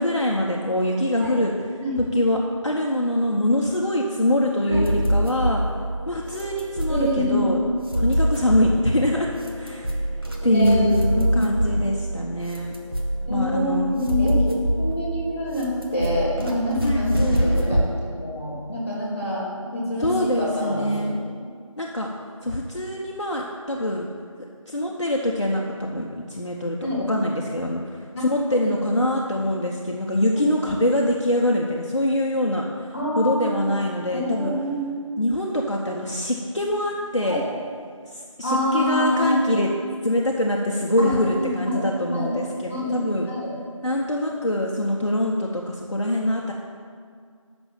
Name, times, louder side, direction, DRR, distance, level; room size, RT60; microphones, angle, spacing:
voice 1, 0.0-1.5 2.1-5.6 6.1-7.6 8.0-10.0 10.4-12.8 13.3-13.9 16.8-17.1 20.0-21.2 21.8-22.1 22.4-24.1 24.7-34.5 35.2-37.4 38.0-39.7 40.0-43.3 43.8-46.5, left 1 dB, 60° left, -2 dB, 0.9 m, -24 dB
sound 1, 4.7-17.9, equal, 45° right, 1.2 m, -26 dB
voice 2, 6.9-7.6 10.4-11.5 13.2-17.8 18.1-19.5 19.7-21.2 26.8-27.0 28.1-28.3 28.7-28.8 30.8-30.9 32.9-33.7 34.1-35.1 37.3-37.4 38.4-39.5 41.0-41.8 42.1-42.3 42.7-43.0 43.2-43.5, left 1 dB, 25° left, -5 dB, 2.4 m, -26 dB
7.0 x 6.1 x 7.3 m, 2.1 s
figure-of-eight pair, 175°, 17 cm